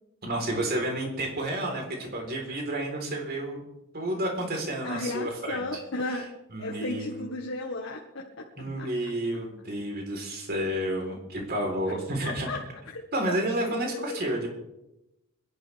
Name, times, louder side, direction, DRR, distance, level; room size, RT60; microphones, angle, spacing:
voice 1, 0.2-3.6 3.9-5.6 6.1-6.2 6.5-7.2 8.6-12.5 13.1-14.5, right 1 dB, 50° right, 1 dB, 4.1 m, -30 dB
voice 2, 4.8-6.3 6.6-8.4 8.8-8.9 11.9-12.0 12.2-12.6 13.6-14.3, left 2 dB, 65° left, 0 dB, 1.6 m, -34 dB
24.5 x 11.5 x 3.5 m, 0.91 s
head